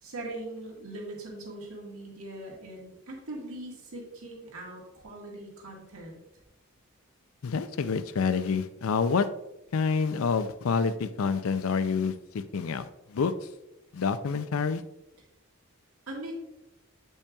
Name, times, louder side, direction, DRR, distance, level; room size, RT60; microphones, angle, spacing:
voice 1, 0.0-6.2 16.1-16.4, right 1 dB, 85° right, -1 dB, 1.7 m, -41 dB
voice 2, 7.4-9.3 9.7-13.3 13.9-14.8, left 5 dB, 80° left, 11 dB, 0.4 m, -28 dB
8.5 x 5.4 x 2.3 m, 0.91 s
head